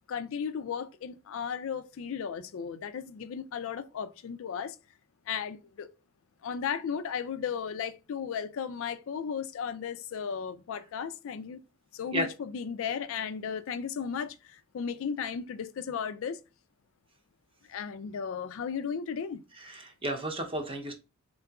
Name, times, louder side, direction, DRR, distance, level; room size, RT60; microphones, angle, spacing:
voice 1, 0.1-4.8 5.3-5.9 6.4-11.6 11.9-16.4 17.7-19.4, left 7 dB, 65° left, 0.4 m, -35 dB
voice 2, 19.5-20.9, right 1 dB, 25° right, 0.7 m, -33 dB
3.7 x 3.6 x 2.2 m
head